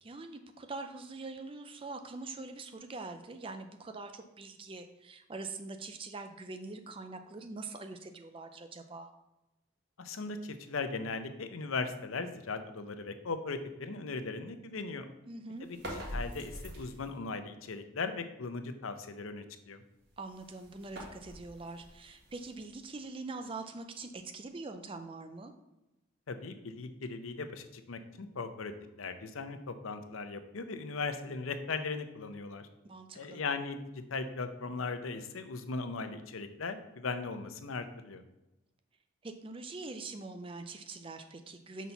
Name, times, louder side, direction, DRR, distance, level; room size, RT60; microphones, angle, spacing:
voice 1, 0.0-9.1 15.3-15.7 20.2-25.5 32.8-33.4 39.2-41.9, right 3 dB, 25° right, 7 dB, 0.4 m, -43 dB
voice 2, 10.0-15.1 15.6-19.8 26.3-32.7 33.1-38.2, left 4 dB, 85° left, 9 dB, 0.7 m, -38 dB
sound 1, 15.6-17.2 20.0-22.9, equal, 55° right, 1.6 m, -45 dB
6.1 x 4.1 x 5.6 m, 0.96 s
head